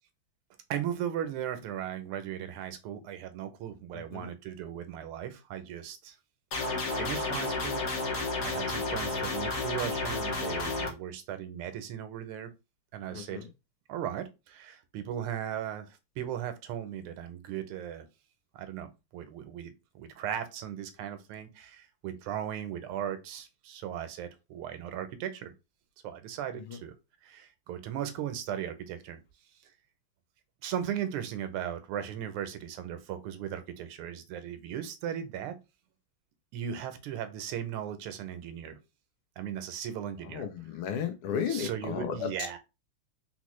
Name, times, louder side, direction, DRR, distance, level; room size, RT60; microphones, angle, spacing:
voice 1, 0.7-6.2 6.9-7.8 8.1-12.5 12.9-13.5 13.9-15.9 16.2-18.1 18.5-25.5 26.0-26.9 27.2-29.2 30.6-35.6 36.5-38.8 39.4-40.4 41.5-42.6, right 10 dB, 85° right, 1.5 m, -37 dB
voice 2, 3.9-4.3 13.1-13.5 26.5-26.8 40.2-42.6, left 8 dB, 80° left, 1.5 m, -35 dB
sound 1, 6.5-10.9, left 3 dB, 60° left, 0.9 m, -31 dB
4.0 x 2.1 x 3.0 m
omnidirectional pair, 2.4 m